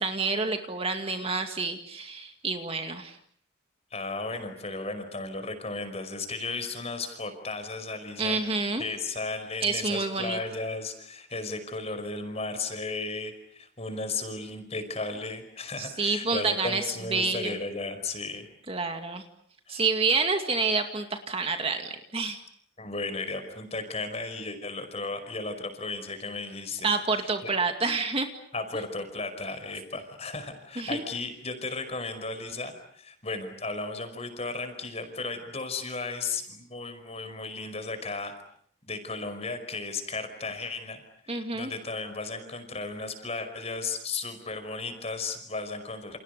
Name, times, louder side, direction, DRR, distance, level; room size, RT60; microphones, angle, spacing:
voice 1, 0.0-3.2 8.2-8.8 9.6-10.4 15.8-16.8 17.1-17.6 18.7-19.2 19.7-22.4 26.8-28.3 30.8-31.0 41.3-41.7, right 4 dB, 30° right, 5 dB, 2.2 m, -28 dB
voice 2, 3.9-8.4 8.8-18.5 19.7-19.8 22.8-26.9 27.2-27.5 28.5-38.3 38.9-41.0 41.5-46.2, left 3 dB, 30° left, 8 dB, 5.3 m, -35 dB
30.0 x 29.5 x 6.7 m, 0.64 s
head